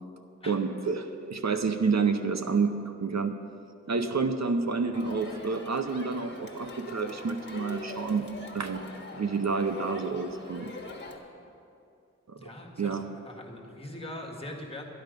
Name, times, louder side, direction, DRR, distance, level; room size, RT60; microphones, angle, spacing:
voice 1, 0.5-3.4 3.9-8.8 9.2-10.7 12.3-12.5 12.8-13.1, right 4 dB, 65° right, 7 dB, 0.7 m, -29 dB
Crowd, 4.9-11.2, left 2 dB, 40° left, 1.4 m, -42 dB
voice 2, 12.4-14.8, left 1 dB, 20° left, -1 dB, 1.7 m, -42 dB
13.0 x 10.5 x 5.2 m, 2.6 s
wide cardioid pair, 65°, 29 cm